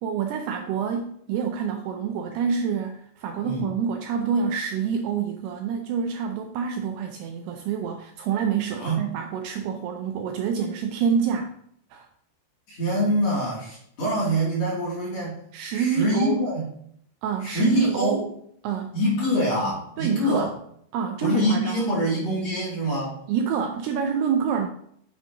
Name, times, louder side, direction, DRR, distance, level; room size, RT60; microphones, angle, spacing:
voice 1, 0.0-11.5 11.9-12.1 15.5-16.4 17.2-18.2 18.6-19.0 20.0-20.5 20.9-21.9 23.3-24.7, right 7 dB, 80° right, 4 dB, 2.4 m, -27 dB
voice 2, 12.7-15.4 15.7-16.7 17.4-18.3 18.9-20.5 21.2-23.2, equal, 40° left, -6 dB, 3.6 m, -25 dB
8.1 x 7.5 x 2.9 m, 0.67 s
omnidirectional pair, 5.1 m